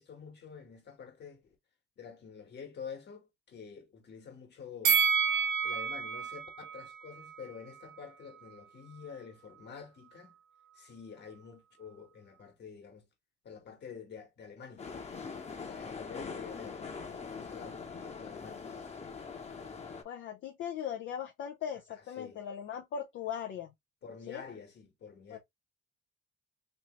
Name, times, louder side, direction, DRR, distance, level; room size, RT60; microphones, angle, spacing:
voice 1, 0.0-1.5 2.0-5.0 5.6-10.3 10.7-13.0 13.4-14.9 15.6-18.6 22.2-22.4 24.0-25.4, left 6 dB, 60° left, 1.5 m, -48 dB
Bell, 4.8-8.0 8.4-8.5, right 6 dB, 80° right, 0.8 m, -30 dB
sound 1, 14.8-20.0, left 5 dB, 35° left, 1.0 m, -42 dB
voice 2, 20.0-23.7 24.3-24.4 25.3-25.4, left 8 dB, 75° left, 0.7 m, -39 dB
3.2 x 2.9 x 3.0 m
cardioid pair, 90°, 20 cm